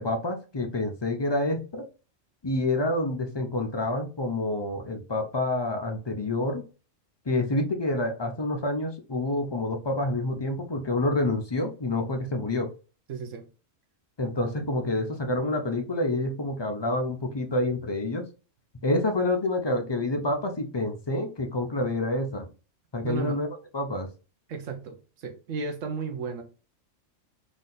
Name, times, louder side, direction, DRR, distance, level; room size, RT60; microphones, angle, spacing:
voice 1, 0.0-1.9 2.4-6.6 7.3-12.7 14.2-18.2 18.8-22.5 22.9-23.5 23.7-24.1, left 2 dB, 45° left, 4 dB, 0.3 m, -28 dB
voice 2, 13.1-13.4 23.0-23.4 24.5-26.4, right 5 dB, 70° right, 4 dB, 1.2 m, -34 dB
4.0 x 2.5 x 3.9 m, 0.34 s
omnidirectional pair, 1.4 m